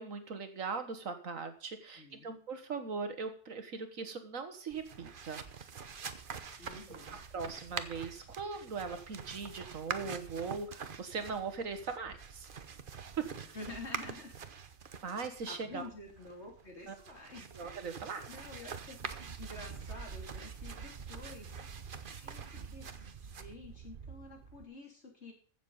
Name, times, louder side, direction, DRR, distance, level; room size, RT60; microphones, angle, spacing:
voice 1, 0.0-5.4 6.3-6.6 7.3-12.5 13.2-13.6 15.0-15.8 16.9-17.0 17.5-18.2, right 5 dB, 65° right, 8 dB, 1.7 m, -40 dB
voice 2, 2.0-2.3 6.6-7.2 13.5-14.3 15.5-17.5 18.3-21.6 22.2-25.3, left 2 dB, 50° left, 1 dB, 3.3 m, -49 dB
sound 1, 4.7-24.6, right 6 dB, 40° right, 0.9 m, -45 dB
14.5 x 7.4 x 5.4 m, 0.43 s
omnidirectional pair, 1.5 m